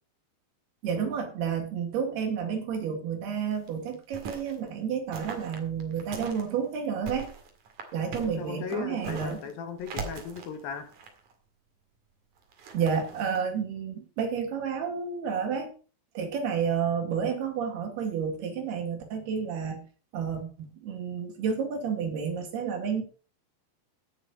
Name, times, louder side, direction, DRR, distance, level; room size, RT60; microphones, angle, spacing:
voice 1, 0.8-7.3 7.9-9.4 12.7-15.7 16.2-19.8 20.1-23.0, right 7 dB, 75° right, 4 dB, 4.2 m, -30 dB
footsteps boots shoes dirt gravel walk short stop scuff, 3.4-4.6 5.1-6.5 6.8-9.5 9.8-11.3 12.4-13.4, right 5 dB, 55° right, 3.3 m, -41 dB
voice 2, 8.2-10.9, left 6 dB, 70° left, 8 dB, 2.9 m, -37 dB
17.0 x 6.7 x 5.0 m, 0.38 s
omnidirectional pair, 4.6 m